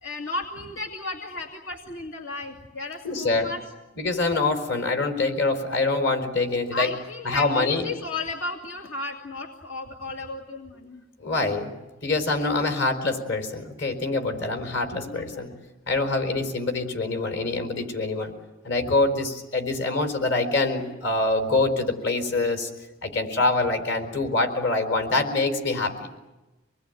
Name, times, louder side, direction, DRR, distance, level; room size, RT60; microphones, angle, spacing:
voice 1, 0.0-3.6 6.7-11.0 14.8-15.5 18.8-19.0, left 2 dB, 85° left, 1 dB, 2.5 m, -34 dB
voice 2, 3.0-3.5 3.9-6.9 7.2-7.8 11.2-11.7 12.0-15.5 15.9-18.3 18.6-22.7 23.0-26.1, left 3 dB, 65° left, 5 dB, 4.4 m, -25 dB
26.5 x 20.5 x 9.3 m, 1.1 s
head